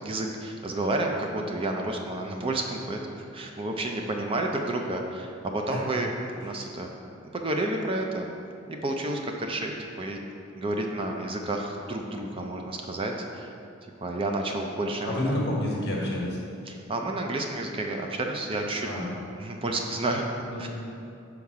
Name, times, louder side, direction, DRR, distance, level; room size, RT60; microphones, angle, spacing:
voice 1, 0.0-6.9 7.3-8.3 8.7-10.2 10.6-13.5 14.0-15.2 16.7-18.9 19.4-20.2 20.6-20.7, right 2 dB, 25° right, 2 dB, 0.4 m, -30 dB
voice 2, 15.0-16.4 18.8-19.1 20.4-20.6, left 1 dB, 55° left, -2 dB, 1.3 m, -29 dB
5.6 x 4.6 x 4.7 m, 2.5 s
head